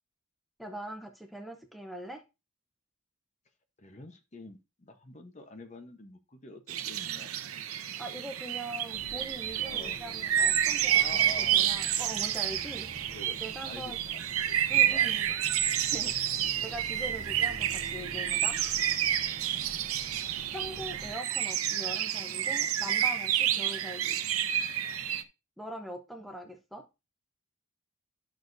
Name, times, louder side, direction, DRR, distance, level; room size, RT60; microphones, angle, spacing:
voice 1, 0.6-2.2 8.0-12.9 13.4-14.0 14.7-15.3 15.9-18.6 20.5-24.2 25.6-26.8, right 1 dB, ahead, 3 dB, 0.8 m, -42 dB
voice 2, 3.8-7.3 9.5-10.0 10.9-11.7 13.1-13.4 13.6-13.9 14.4-15.4 16.4-16.5 19.4-19.8 26.3-26.4, left 2 dB, 35° left, 7 dB, 0.9 m, -47 dB
sound 1, 6.7-25.2, right 10 dB, 90° right, 0.7 m, -29 dB
sound 2, 8.9-21.2, right 1 dB, 45° right, 1.4 m, -48 dB
12.0 x 6.2 x 2.6 m, 0.27 s
head